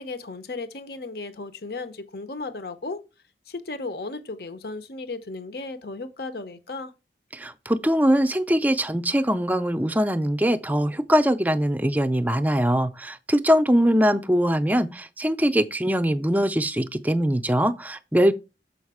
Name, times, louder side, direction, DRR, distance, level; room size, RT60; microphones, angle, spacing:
voice 1, 0.0-3.0 3.5-6.9, left 3 dB, 60° left, 0.8 m, -35 dB
voice 2, 7.3-18.3, equal, 10° right, 0.5 m, -22 dB
7.2 x 5.0 x 4.8 m
head